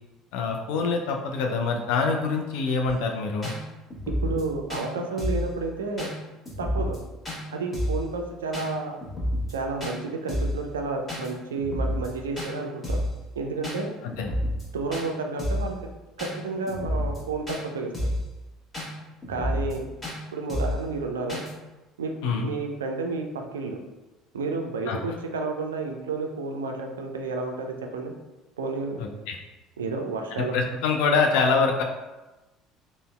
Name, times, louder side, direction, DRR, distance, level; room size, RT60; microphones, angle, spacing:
voice 1, 0.3-3.5 14.0-14.3 22.2-22.5 24.9-25.0 29.0-29.4 30.4-31.8, left 4 dB, 65° left, 2 dB, 0.3 m, -25 dB
sound 1, 2.9-3.0 3.4-3.6 3.9-4.4 4.7-4.8 5.2-5.5 6.0-6.1 6.5-7.0 7.2-7.4 7.7-8.0 8.5-8.7 9.0-9.5 9.8-10.0 10.3-10.6 11.1-11.3 11.6-12.1 12.4-12.5 12.8-13.1 13.6-13.8 14.1-14.6 14.9-15.1 15.4-15.7 16.2-16.3 16.7-17.2 17.5-17.6 17.9-18.3 18.7-18.9 19.2-19.8 20.0-20.2 20.5-20.8 21.3-21.5, left 1 dB, 20° left, 1.0 m, -29 dB
voice 2, 4.2-6.1 6.6-7.0 7.5-9.0 9.5-13.0 13.4-13.9 14.7-15.8 16.2-17.9 19.3-19.9 20.3-21.4 22.0-23.8 24.3-28.1 28.6-29.0 29.8-30.6, right 3 dB, 75° right, 3 dB, 0.3 m, -31 dB
3.8 x 2.0 x 2.2 m, 1.1 s
figure-of-eight pair, 60°, 0 cm